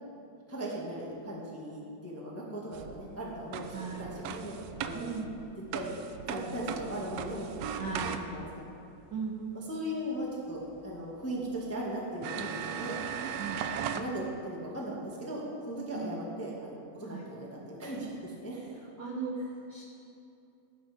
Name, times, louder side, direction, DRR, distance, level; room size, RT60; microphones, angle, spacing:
voice 1, 0.5-5.2 5.7-8.5 9.7-13.3 13.9-18.7, right 1 dB, 10° left, -4 dB, 1.0 m, -38 dB
sound 1, 2.7-8.6 10.8-10.9 11.5-11.6 12.2-14.1, right 8 dB, 80° right, 1.5 m, -38 dB
voice 2, 3.7-4.2 4.9-5.3 7.8-8.5 9.1-9.4 13.4-13.6 15.9-16.2 17.1-17.3 19.0-19.4 19.7-19.8, right 5 dB, 60° right, -2 dB, 1.2 m, -38 dB
18.5 x 10.0 x 3.6 m, 2.7 s
omnidirectional pair, 3.6 m